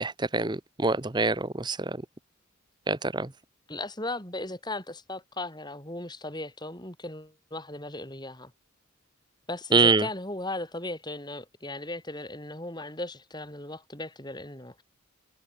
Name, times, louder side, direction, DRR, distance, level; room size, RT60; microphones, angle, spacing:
voice 1, 0.0-2.0 2.9-3.3 9.7-10.0, right 3 dB, 20° right, 0.9 m, -25 dB
voice 2, 3.7-8.5 9.5-14.8, left 2 dB, 20° left, 7.3 m, -37 dB
head